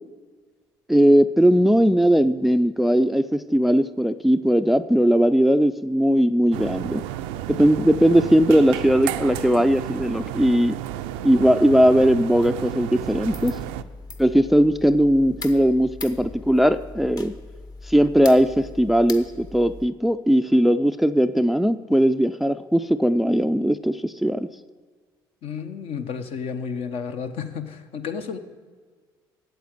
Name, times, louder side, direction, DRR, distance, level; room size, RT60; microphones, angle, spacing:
voice 1, 0.9-7.0 7.5-10.8 11.2-13.6 14.2-17.3 17.9-24.5, equal, ahead, 13 dB, 0.4 m, -19 dB
sound 1, 6.5-13.8, right 12 dB, 75° right, 0.4 m, -32 dB
sound 2, 12.9-19.9, left 3 dB, 35° left, 1.0 m, -40 dB
voice 2, 25.4-28.4, left 6 dB, 60° left, 7 dB, 0.9 m, -31 dB
8.2 x 7.9 x 8.0 m, 1.5 s
hypercardioid pair, 60°, 11 cm